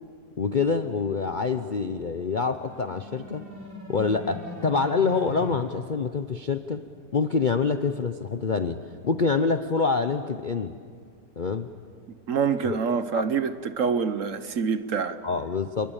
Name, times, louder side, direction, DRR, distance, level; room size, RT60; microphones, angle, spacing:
voice 1, 0.4-3.4 3.9-6.8 7.1-10.7 11.4-11.7 12.6-12.8 13.1-13.2 15.2-15.9, left 4 dB, 50° left, 0.6 m, -26 dB
sound 1, 2.2-5.6, equal, 30° right, 4.6 m, -40 dB
voice 2, 12.3-15.2, right 6 dB, 55° right, 1.1 m, -26 dB
29.5 x 20.5 x 8.8 m
omnidirectional pair, 1.9 m